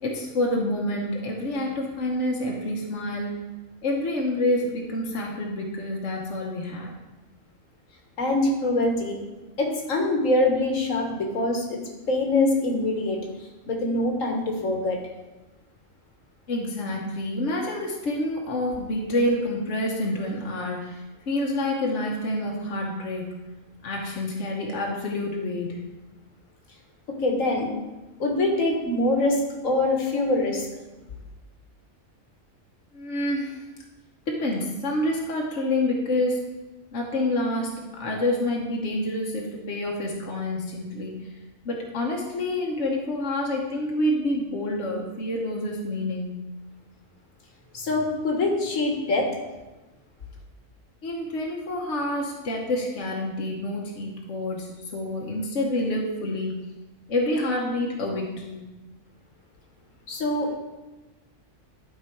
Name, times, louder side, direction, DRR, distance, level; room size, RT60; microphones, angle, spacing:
voice 1, 0.0-3.4 3.8-6.9 16.5-23.3 23.8-25.8 32.9-33.6 34.3-36.4 36.9-41.3 41.6-46.3 51.0-56.7 57.1-58.6, left 1 dB, 65° left, -2 dB, 1.4 m, -28 dB
voice 2, 8.2-9.2 9.6-11.8 12.1-13.2 13.7-15.0 27.2-27.7 28.2-30.7 47.7-49.3 60.1-60.6, left 2 dB, 80° left, 1 dB, 1.8 m, -24 dB
11.5 x 4.7 x 4.6 m, 1.1 s
omnidirectional pair, 1.4 m